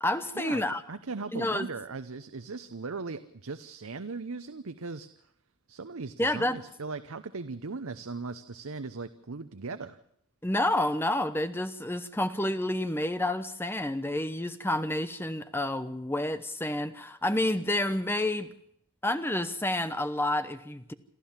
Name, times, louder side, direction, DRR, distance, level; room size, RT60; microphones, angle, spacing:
voice 1, 0.0-0.8 1.3-1.7 6.2-6.6 10.4-18.5 19.0-20.9, left 1 dB, 10° left, 0.9 m, -29 dB
voice 2, 0.9-5.1 5.7-10.0, right 4 dB, 75° right, 0.8 m, -38 dB
27.5 x 13.0 x 7.4 m
head